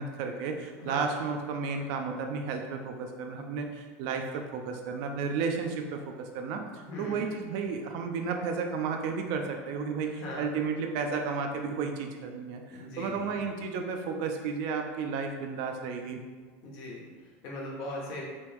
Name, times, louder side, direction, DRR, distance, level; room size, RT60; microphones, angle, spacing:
voice 1, 0.0-16.2, right 5 dB, 65° right, 4 dB, 0.4 m, -33 dB
voice 2, 0.8-1.2 6.8-7.3 10.0-10.5 12.7-13.4 16.6-18.2, left 1 dB, 65° left, -3 dB, 1.0 m, -40 dB
3.0 x 3.0 x 3.4 m, 1.5 s
supercardioid pair, 120°, 7 cm